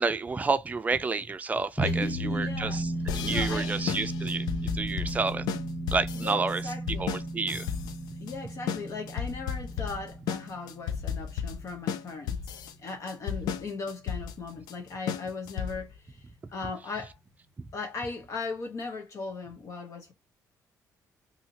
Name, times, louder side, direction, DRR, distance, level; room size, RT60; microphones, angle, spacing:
voice 1, 0.0-5.5 5.9-7.7, right 4 dB, 25° right, 0.5 m, -30 dB
voice 2, 1.8-2.8 3.3-3.7 6.1-7.1 8.2-12.4 12.8-17.2 17.7-20.1, left 4 dB, 50° left, 0.9 m, -38 dB
sound 1, 1.8-12.5, right 1 dB, 5° left, 1.3 m, -35 dB
sound 2, 3.1-16.0, left 8 dB, 90° left, 0.4 m, -34 dB
2.8 x 2.7 x 2.7 m
cardioid pair, 100°, 7 cm